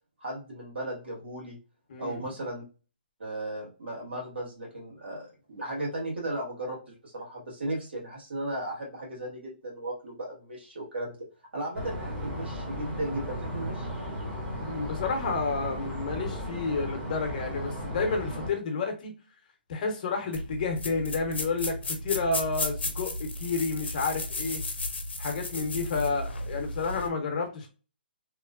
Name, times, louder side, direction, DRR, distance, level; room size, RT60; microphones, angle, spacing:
voice 1, 0.2-1.6 2.0-2.6 3.2-11.2 11.5-13.9, right 1 dB, 85° right, -3 dB, 1.5 m, -36 dB
voice 2, 1.9-2.2 14.6-19.1 19.7-24.6 25.2-27.7, left 4 dB, 45° left, 3 dB, 0.8 m, -30 dB
sound 1, 11.7-18.5, equal, 20° right, 0.8 m, -35 dB
sound 2, 20.3-27.1, left 2 dB, 85° left, 0.6 m, -34 dB
3.0 x 2.1 x 2.4 m, 0.34 s
hypercardioid pair, 150°, 6 cm